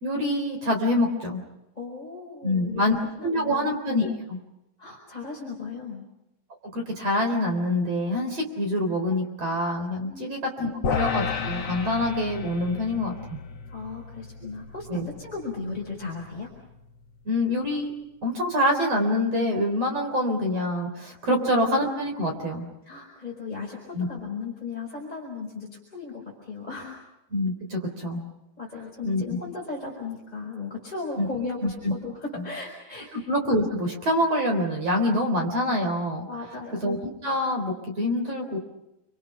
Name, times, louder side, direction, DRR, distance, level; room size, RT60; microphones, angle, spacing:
voice 1, 0.0-1.4 2.4-3.0 3.2-4.4 6.6-13.4 14.9-15.0 17.2-17.9 18.2-22.7 23.9-24.1 27.3-28.3 29.0-29.4 31.2-31.3 31.6-31.9 33.1-36.3 36.8-38.6, left 1 dB, 35° right, 3 dB, 4.4 m, -26 dB
voice 2, 1.7-3.7 4.8-6.0 10.0-10.9 13.7-16.5 21.3-21.5 22.8-27.0 28.6-33.1 36.3-37.0, left 4 dB, 10° left, -3 dB, 4.7 m, -36 dB
sound 1, 10.8-17.2, left 6 dB, 60° left, 1.2 m, -33 dB
29.5 x 25.0 x 5.9 m, 0.88 s
omnidirectional pair, 5.1 m